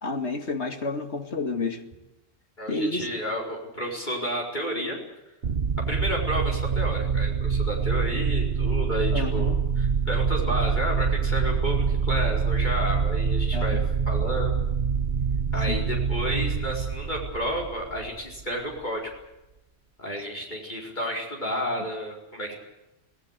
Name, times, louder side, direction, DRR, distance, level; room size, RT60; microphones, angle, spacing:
voice 1, 0.0-1.8 2.7-3.1 9.1-9.6 13.5-13.8 15.7-15.9, left 3 dB, 75° left, 7 dB, 2.6 m, -30 dB
voice 2, 2.6-5.0 5.9-14.5 15.5-19.1 20.0-22.5, equal, 45° left, -1 dB, 4.9 m, -31 dB
sound 1, 5.4-18.4, right 6 dB, 55° right, 1.2 m, -25 dB
26.0 x 18.5 x 8.3 m, 0.97 s
omnidirectional pair, 1.1 m